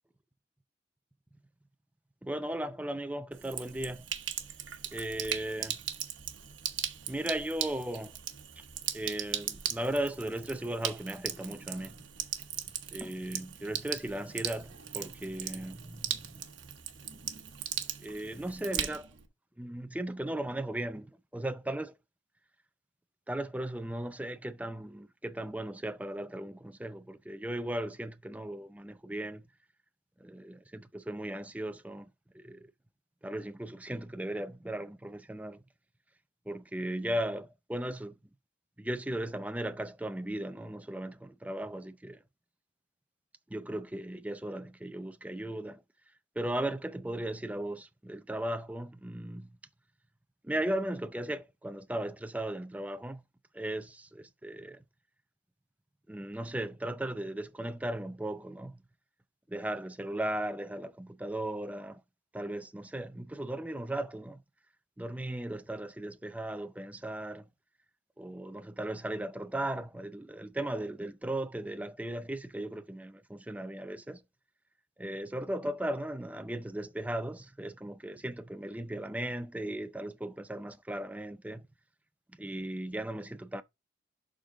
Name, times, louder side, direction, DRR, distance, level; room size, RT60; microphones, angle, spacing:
voice 1, 2.2-4.0 4.9-5.8 7.1-8.1 8.6-8.7 8.9-12.0 12.9-16.4 18.0-19.1 19.6-21.9 23.3-29.4 30.2-32.1 32.3-32.7 33.2-35.6 36.5-38.1 38.8-42.2 43.5-45.8 46.4-49.5 50.4-53.2 53.5-54.8 56.1-58.8 59.5-62.0 62.3-64.4 65.0-67.4 68.2-74.2 75.0-81.6 82.4-83.6, right 1 dB, 10° right, 0.4 m, -37 dB
Sink (filling or washing), 3.3-19.3, right 10 dB, 85° right, 1.1 m, -38 dB
11.5 x 3.9 x 3.7 m
head